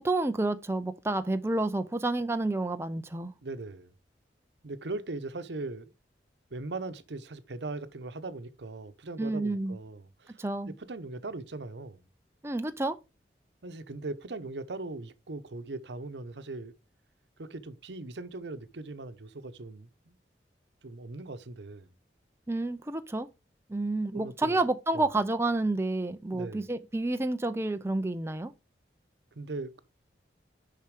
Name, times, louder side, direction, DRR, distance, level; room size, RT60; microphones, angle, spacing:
voice 1, 0.0-3.3 9.2-9.8 10.4-10.7 12.4-13.0 22.5-23.3 23.7-28.5, right 2 dB, 15° right, 0.5 m, -29 dB
voice 2, 3.4-3.9 4.6-5.9 6.5-12.0 13.6-16.7 17.4-20.2 20.8-21.9 24.1-24.6 24.9-25.1 26.3-26.7 29.3-29.8, right 2 dB, 80° right, 0.8 m, -39 dB
7.1 x 5.6 x 4.8 m
head